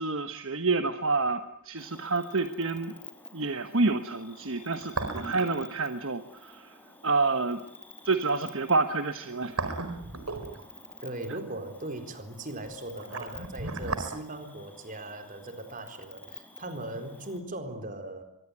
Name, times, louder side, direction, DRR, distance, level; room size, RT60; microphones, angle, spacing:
voice 1, 0.0-2.9 3.3-6.7 7.0-7.6 8.0-9.6, right 3 dB, 60° right, 9 dB, 1.4 m, -28 dB
sound 1, 1.4-1.5 4.6-5.6 5.9-6.0 9.1-10.9 12.6-14.1 14.4-14.5, right 3 dB, 80° right, 4.6 m, -34 dB
Cricket, 1.8-17.4, left 3 dB, 10° left, 4.6 m, -50 dB
voice 2, 11.0-18.2, right 1 dB, 40° right, 8 dB, 4.2 m, -39 dB
25.0 x 23.5 x 9.8 m, 0.70 s
head